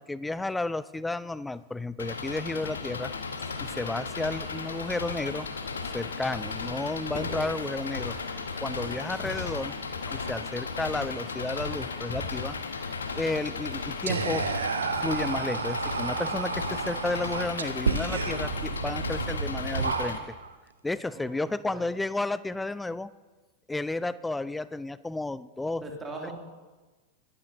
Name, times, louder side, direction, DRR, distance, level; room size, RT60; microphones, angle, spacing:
voice 1, 0.0-3.1 3.6-5.5 5.9-8.2 8.6-9.8 10.1-12.8 13.1-14.5 15.0-20.3 20.8-23.1 23.7-25.8, left 2 dB, 5° left, 17 dB, 0.4 m, -32 dB
sound 1, 1.5-4.3 5.0-19.4, left 2 dB, 30° left, 3.8 m, -49 dB
Engine, 2.0-20.2, left 4 dB, 70° left, 1.1 m, -35 dB
Whispering, 14.1-20.5, right 5 dB, 70° right, 0.7 m, -31 dB
voice 2, 21.1-21.9 25.8-26.3, right 2 dB, 15° right, 0 dB, 2.6 m, -40 dB
23.0 x 12.5 x 2.7 m, 1.3 s
figure-of-eight pair, 90°, 0 cm